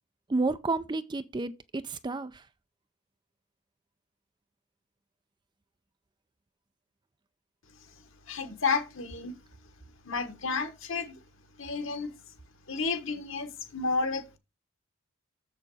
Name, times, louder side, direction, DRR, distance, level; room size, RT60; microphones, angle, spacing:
voice 1, 0.3-2.4, right 3 dB, 20° right, 0.4 m, -31 dB
voice 2, 8.3-9.3 10.0-11.1 11.6-12.1 12.7-14.4, left 4 dB, 60° left, 1.4 m, -31 dB
7.2 x 6.7 x 4.8 m
head